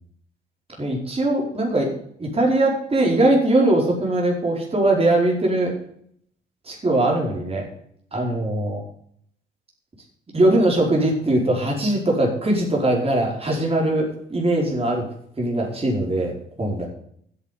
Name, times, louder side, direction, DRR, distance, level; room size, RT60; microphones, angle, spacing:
voice 1, 0.8-1.9 2.2-5.7 6.6-7.6 8.1-8.8 10.3-15.1 15.4-16.9, right 1 dB, 30° right, -1 dB, 4.9 m, -21 dB
10.5 x 8.4 x 8.4 m, 0.65 s
cardioid pair, 90°, 20 cm